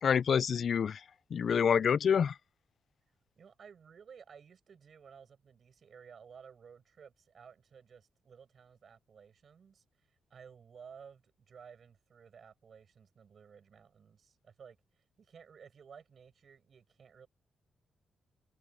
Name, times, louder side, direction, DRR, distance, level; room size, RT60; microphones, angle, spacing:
voice 1, 0.0-1.0 1.3-2.3, left 7 dB, 60° left, 0.3 m, -27 dB
voice 2, 3.4-14.8 15.2-17.3, right 6 dB, 60° right, 5.5 m, -55 dB
cardioid pair, 70°, 0 cm